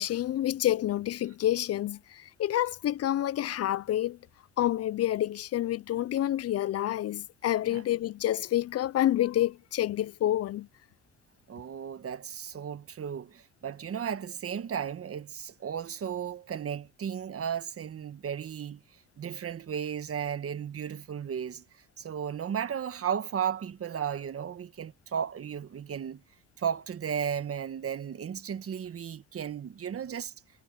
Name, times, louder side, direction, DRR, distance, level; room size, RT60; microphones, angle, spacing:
voice 1, 0.0-4.2 4.6-10.7, left 13 dB, 55° left, 0.5 m, -28 dB
voice 2, 11.5-18.8 19.2-21.6 22.0-26.2 26.6-30.3, right 8 dB, 50° right, 1.5 m, -34 dB
cardioid pair, 90°, 30 cm